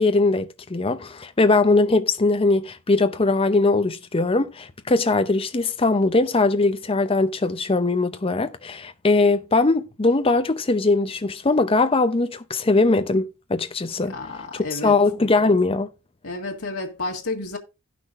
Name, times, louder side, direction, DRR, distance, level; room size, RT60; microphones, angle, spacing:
voice 1, 0.0-14.1 14.7-15.9, left 3 dB, 25° left, 0.6 m, -20 dB
voice 2, 14.1-14.9 16.2-17.6, left 3 dB, 80° left, 1.7 m, -31 dB
16.5 x 5.9 x 2.5 m
head